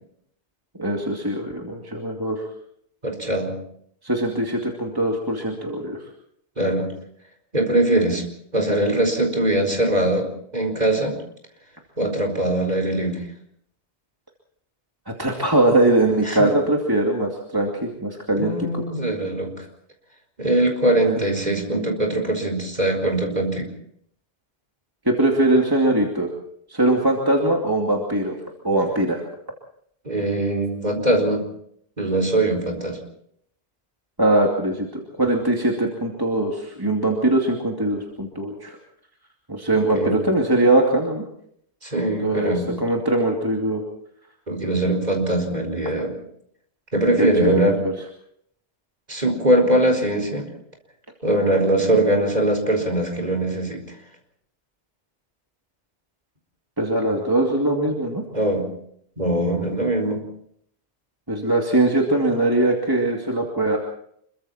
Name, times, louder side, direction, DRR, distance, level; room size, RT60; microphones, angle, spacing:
voice 1, 0.8-2.4 4.0-6.0 15.1-18.8 25.1-26.3 26.7-28.4 28.6-29.2 34.2-38.8 39.5-41.2 42.2-43.8 47.2-47.6 56.8-58.2 61.3-63.8, right 1 dB, 20° right, 0 dB, 2.6 m, -21 dB
voice 2, 3.0-3.6 6.6-6.9 7.5-8.2 8.5-11.1 12.0-13.2 16.2-16.5 18.4-19.5 20.4-23.7 30.0-31.4 32.0-33.0 40.0-40.1 41.8-42.8 44.5-46.2 46.9-47.8 49.1-50.5 51.2-53.8 58.3-58.7 59.2-60.2, right 1 dB, 40° right, 3 dB, 4.6 m, -21 dB
27.0 x 23.0 x 4.3 m, 0.68 s
omnidirectional pair, 1.2 m